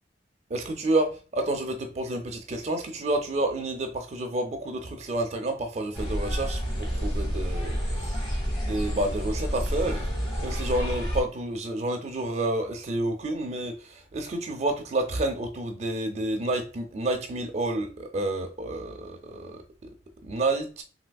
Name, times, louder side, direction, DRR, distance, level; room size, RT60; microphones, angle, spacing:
voice 1, 0.5-8.3 8.6-10.1 10.4-19.6 20.2-20.8, right 2 dB, 35° right, 0.4 m, -29 dB
sound 1, 5.9-11.2, equal, 25° left, 1.0 m, -29 dB
3.3 x 2.8 x 2.2 m
head